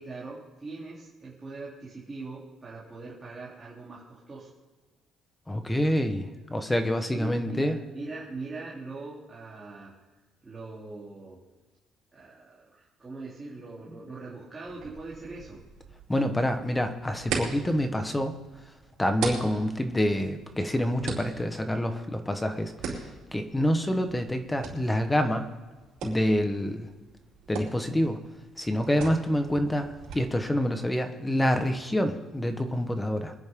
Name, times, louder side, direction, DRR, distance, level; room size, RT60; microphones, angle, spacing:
voice 1, 0.0-4.5 7.1-10.0 10.4-11.4 12.1-15.6, right 3 dB, 20° right, -7 dB, 3.1 m, -41 dB
voice 2, 5.5-7.8 16.1-18.3 19.0-25.5 26.0-26.9 27.5-28.2 28.6-33.3, equal, 10° left, 7 dB, 1.1 m, -27 dB
sound 1, 14.6-30.1, right 5 dB, 80° right, 4.5 m, -41 dB
25.0 x 10.5 x 3.7 m, 1.3 s
cardioid pair, 145°, 0 cm